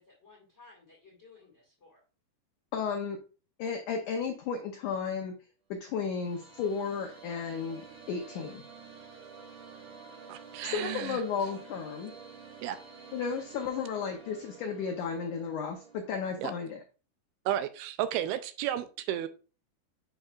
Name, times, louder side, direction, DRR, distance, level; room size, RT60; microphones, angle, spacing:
voice 1, 0.0-2.0, left 4 dB, 35° left, 1.0 m, -57 dB
voice 2, 2.7-3.2 3.6-5.3 5.7-8.6 10.7-12.1 13.1-16.8, left 6 dB, 90° left, 1.7 m, -33 dB
sound 1, 5.8-16.1, right 5 dB, 35° right, 2.1 m, -50 dB
voice 3, 10.3-11.2 12.6-12.8 16.4-16.5 17.5-19.3, right 11 dB, 80° right, 2.4 m, -33 dB
9.2 x 5.6 x 2.4 m
omnidirectional pair, 4.7 m